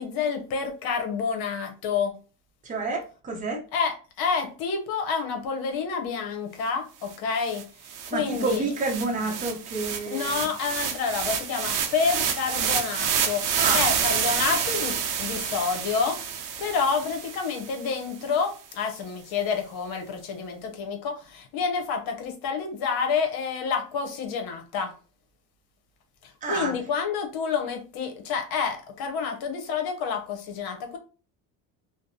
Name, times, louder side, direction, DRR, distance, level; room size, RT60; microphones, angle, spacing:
voice 1, 0.0-2.2 3.7-7.7 8.1-8.6 10.1-24.9 26.2-31.0, left 5 dB, 75° left, 5 dB, 0.8 m, -29 dB
voice 2, 2.6-3.6 8.1-10.5 13.6-13.8 26.4-26.8, right 3 dB, 20° right, 1 dB, 0.7 m, -29 dB
sound 1, 7.1-7.2 7.5-17.8, right 7 dB, 60° right, 0.6 m, -28 dB
2.6 x 2.1 x 2.6 m, 0.35 s
cardioid pair, 120°, 37 cm